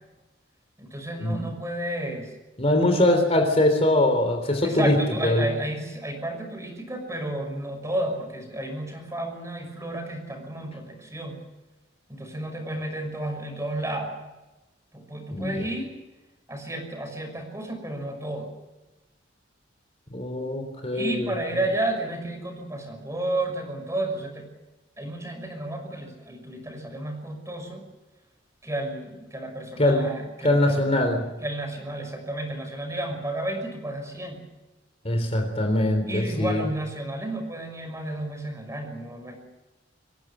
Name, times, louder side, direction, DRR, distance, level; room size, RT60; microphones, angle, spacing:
voice 1, 0.8-2.3 4.6-11.4 12.1-14.2 14.9-16.0 16.5-18.5 20.9-24.5 25.0-27.8 28.6-31.0 31.4-34.5 36.1-39.4, right 1 dB, 15° right, 5 dB, 5.8 m, -32 dB
voice 2, 2.6-4.9 5.2-5.5 15.3-15.7 20.1-21.3 29.8-30.0 30.4-31.3 35.0-36.6, left 1 dB, 35° left, 5 dB, 3.6 m, -22 dB
25.5 x 16.5 x 9.3 m, 1.1 s
head